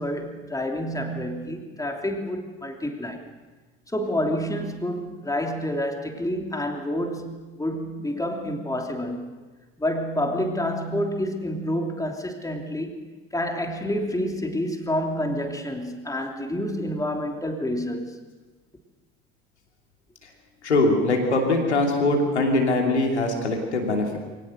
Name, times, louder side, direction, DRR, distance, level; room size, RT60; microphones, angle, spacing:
voice 1, 0.0-3.2 3.9-9.3 9.8-13.0 13.3-18.2, left 1 dB, 10° left, 3 dB, 3.1 m, -28 dB
voice 2, 20.6-24.2, left 2 dB, 85° left, 1 dB, 2.9 m, -22 dB
22.5 x 19.0 x 6.6 m, 1.2 s
figure-of-eight pair, 60°, 33 cm